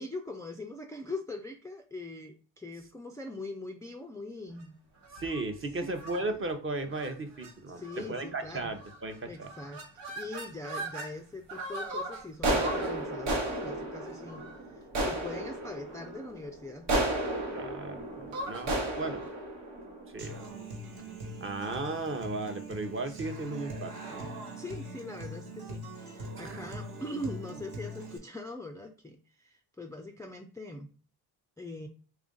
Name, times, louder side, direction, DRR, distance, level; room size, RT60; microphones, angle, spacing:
voice 1, 0.0-4.8 5.8-5.9 7.7-8.7 9.2-16.9 24.6-30.9 31.6-31.9, left 2 dB, 10° left, 2 dB, 0.3 m, -42 dB
sound 1, 5.0-5.4 6.0-6.2 6.9-7.1 7.4-7.5 7.8-8.2 8.8-9.1 9.4-11.1 11.5-20.7, right 1 dB, 85° right, 1.2 m, -34 dB
voice 2, 5.1-9.5 17.5-19.2 20.1-20.4 21.4-24.3 26.4-26.7, right 2 dB, 30° right, 6 dB, 0.7 m, -36 dB
Human voice / Acoustic guitar, 20.2-28.2, right 1 dB, 60° right, 1.3 m, -42 dB
3.4 x 2.5 x 3.8 m, 0.38 s
cardioid pair, 75°, 43 cm